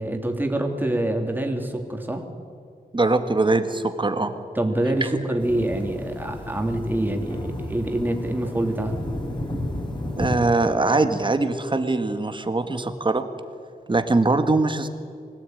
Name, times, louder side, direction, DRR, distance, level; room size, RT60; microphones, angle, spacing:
voice 1, 0.0-2.2 4.5-9.0, right 1 dB, 10° right, 3 dB, 3.1 m, -26 dB
voice 2, 2.9-4.3 5.0-5.1 10.2-13.2 13.9-14.9, right 2 dB, 30° right, 8 dB, 1.8 m, -22 dB
sound 1, 5.4-10.4, left 1 dB, 30° left, 5.0 m, -32 dB
25.0 x 17.0 x 9.4 m, 2.2 s
wide cardioid pair, 110°, 17 cm